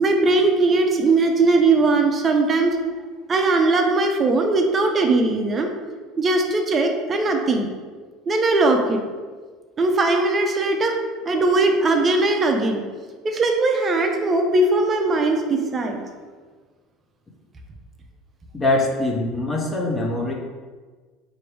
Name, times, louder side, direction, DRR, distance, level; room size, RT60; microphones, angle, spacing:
voice 1, 0.0-2.8 3.3-5.7 6.2-7.7 8.3-9.0 9.8-11.0 11.2-12.8 13.2-16.0, right 2 dB, 25° right, 3 dB, 0.5 m, -19 dB
voice 2, 18.5-20.3, left 2 dB, 20° left, 0 dB, 0.6 m, -23 dB
4.5 x 2.6 x 3.2 m, 1.4 s
cardioid pair, 140°, 0 cm